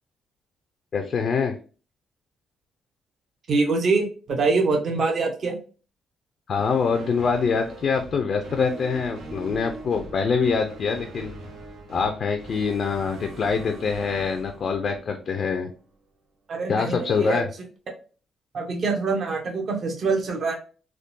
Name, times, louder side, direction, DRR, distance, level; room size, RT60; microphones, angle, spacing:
voice 1, 0.9-1.6 6.5-11.3 11.9-15.7 16.7-17.5, left 5 dB, 55° left, 5 dB, 0.5 m, -24 dB
voice 2, 3.5-5.6 16.5-17.4 18.5-20.5, right 3 dB, 55° right, 2 dB, 0.9 m, -24 dB
sound 1, 6.5-15.9, right 2 dB, 85° right, 0.8 m, -42 dB
3.6 x 2.2 x 2.5 m, 0.37 s
cardioid pair, 90°, 0 cm